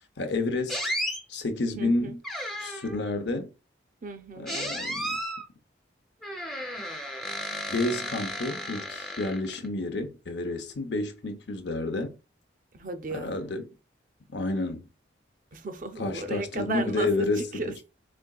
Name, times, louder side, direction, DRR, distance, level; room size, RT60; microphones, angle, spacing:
voice 1, 0.2-0.9 1.3-2.2 2.6-3.5 4.4-5.2 7.7-12.2 13.1-13.7 14.3-14.9 16.0-17.5, left 2 dB, 65° left, 0.7 m, -30 dB
sound 1, 0.7-1.2 2.2-3.0 4.5-5.4 6.2-9.7, equal, ahead, 0.7 m, -33 dB
voice 2, 1.7-2.2 4.0-4.5 12.7-13.4 15.5-17.9, right 3 dB, 45° right, 0.5 m, -35 dB
4.3 x 3.6 x 2.3 m
head